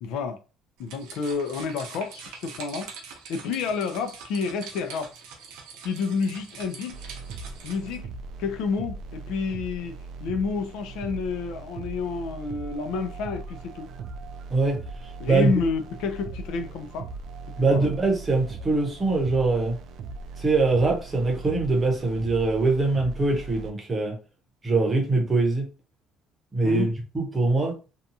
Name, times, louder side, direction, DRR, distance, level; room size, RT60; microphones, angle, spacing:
voice 1, 0.0-0.4 0.8-2.9 3.3-5.1 5.8-7.0 7.6-8.1 8.4-9.9 10.2-13.9 15.2-17.1 17.6-17.9 26.6-26.9, left 5 dB, 65° left, 0.4 m, -29 dB
sound 1, 0.8-8.0, right 5 dB, 80° right, 0.7 m, -43 dB
sound 2, 6.9-23.7, right 4 dB, 50° right, 0.3 m, -39 dB
voice 2, 14.5-15.5 17.6-19.8 20.4-24.2 24.6-25.7 26.5-27.7, right 3 dB, 15° right, 0.8 m, -23 dB
2.7 x 2.3 x 2.6 m
cardioid pair, 155°, 0 cm